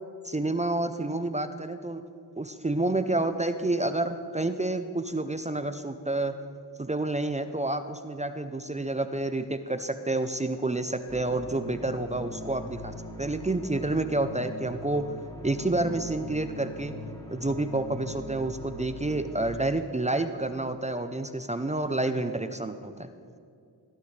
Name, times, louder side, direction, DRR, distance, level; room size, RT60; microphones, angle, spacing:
voice 1, 0.2-2.0 2.4-6.4 6.8-15.2 15.4-16.9 17.3-23.1, right 2 dB, 15° right, 9 dB, 0.6 m, -29 dB
sound 1, 11.1-19.5, left 1 dB, 10° left, 2.9 m, -41 dB
18.0 x 13.0 x 3.3 m, 2.5 s
cardioid pair, 50°, 42 cm